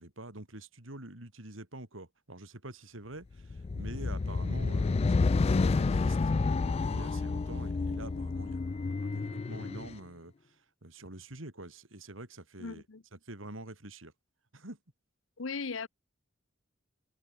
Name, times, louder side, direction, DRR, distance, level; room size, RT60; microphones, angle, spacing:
voice 1, 0.0-6.2 6.6-10.3 10.8-12.8 13.1-14.1 14.5-14.8, right 2 dB, 75° right, 3.8 m, -46 dB
sound 1, 3.4-9.9, left 3 dB, 30° left, 0.3 m, -29 dB
voice 2, 12.6-13.0 15.4-15.9, left 4 dB, 70° left, 0.9 m, -37 dB
head